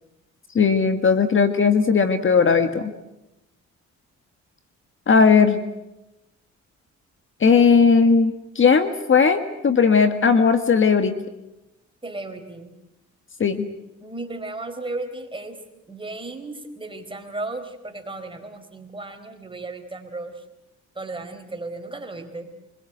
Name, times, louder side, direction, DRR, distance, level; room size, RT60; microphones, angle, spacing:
voice 1, 0.5-2.9 5.1-5.6 7.4-11.1 13.4-13.7, left 5 dB, 40° left, 8 dB, 1.7 m, -17 dB
voice 2, 12.0-12.7 14.0-15.6 15.9-20.4 20.9-22.5, right 2 dB, 15° right, 5 dB, 4.4 m, -35 dB
24.5 x 21.5 x 7.9 m, 0.93 s
cardioid pair, 90°, 30 cm